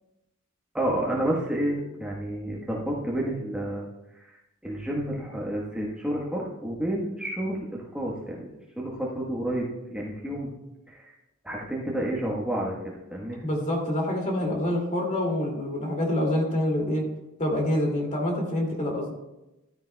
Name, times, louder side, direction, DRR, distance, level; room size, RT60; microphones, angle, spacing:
voice 1, 0.7-3.9 4.2-4.3 4.6-8.5 8.8-9.7 9.9-10.5 10.9-11.1 11.4-12.8 13.1-13.5, right 1 dB, 5° right, -4 dB, 1.2 m, -30 dB
voice 2, 13.4-17.0 17.4-19.1, left 1 dB, 35° left, 0 dB, 2.4 m, -26 dB
13.5 x 13.0 x 2.2 m, 0.97 s
head